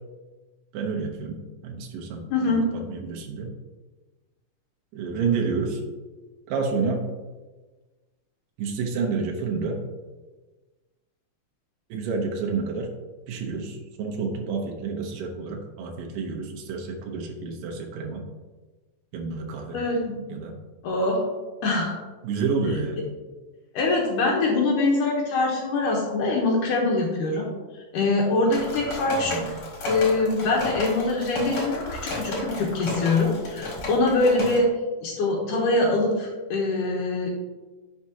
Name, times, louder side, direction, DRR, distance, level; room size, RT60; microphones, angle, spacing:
voice 1, 0.7-3.5 4.9-5.8 6.5-7.1 8.6-9.8 11.9-12.9 13.3-18.3 19.1-19.8 20.3-20.5 22.2-23.1 29.2-29.5, right 4 dB, 85° right, 2 dB, 2.7 m, -29 dB
voice 2, 2.3-2.6 19.7-20.2 20.8-21.2 21.6-21.9 23.7-29.3 29.9-34.7 35.0-37.3, left 2 dB, 75° left, -2 dB, 2.6 m, -23 dB
sound 1, 28.5-34.6, left 1 dB, 45° left, 2.6 m, -32 dB
10.5 x 5.9 x 2.9 m, 1.3 s
omnidirectional pair, 3.8 m